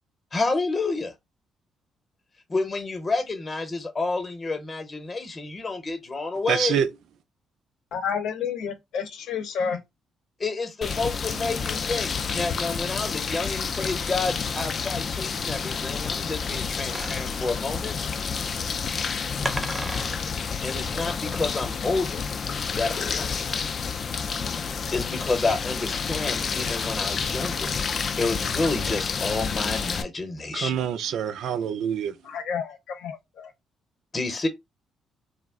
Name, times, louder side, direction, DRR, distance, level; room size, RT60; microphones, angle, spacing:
voice 1, 0.3-1.1 2.5-6.8 10.4-17.9 20.6-22.2 22.7-23.3 24.9-27.7 28.2-30.9 34.1-34.5, left 3 dB, 30° left, 0.8 m, -29 dB
voice 2, 6.5-6.9 30.5-32.1, right 8 dB, 75° right, 0.3 m, -26 dB
voice 3, 7.9-9.8 32.2-33.5, left 6 dB, 80° left, 0.8 m, -30 dB
sound 1, 10.8-30.0, left 5 dB, 50° left, 0.4 m, -29 dB
sound 2, 16.9-21.8, right 1 dB, 15° right, 0.4 m, -36 dB
2.4 x 2.0 x 3.5 m
cardioid pair, 90°, 0 cm